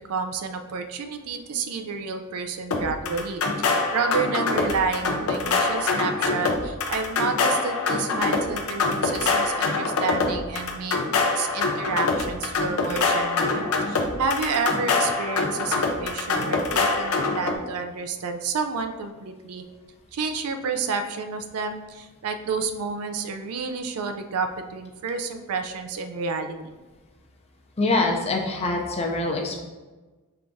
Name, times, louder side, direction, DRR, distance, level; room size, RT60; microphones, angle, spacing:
voice 1, 0.1-11.0 11.4-19.6 20.1-26.7, right 4 dB, 80° right, 7 dB, 0.4 m, -30 dB
sound 1, 2.7-17.6, left 3 dB, 75° left, 0.6 m, -24 dB
voice 2, 27.8-29.6, left 2 dB, 30° left, 1 dB, 0.5 m, -24 dB
4.8 x 3.5 x 2.6 m, 1.2 s
head